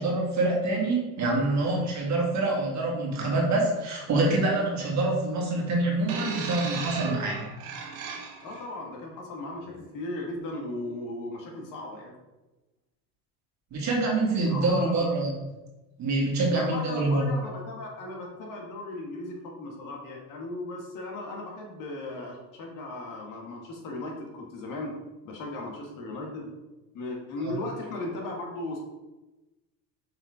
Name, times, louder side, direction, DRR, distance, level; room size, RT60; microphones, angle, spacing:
voice 1, 0.0-7.5 13.7-15.3 16.0-17.3 27.4-27.5, right 2 dB, 45° right, -2 dB, 2.0 m, -26 dB
sound 1, 6.1-8.6 9.6-9.7, right 5 dB, 70° right, 1.4 m, -36 dB
voice 2, 8.4-12.1 14.5-15.2 16.5-25.0 25.2-26.5 26.9-28.8, left 2 dB, 50° left, 0 dB, 1.7 m, -36 dB
5.7 x 3.8 x 4.9 m, 1.1 s
supercardioid pair, 120°, 40 cm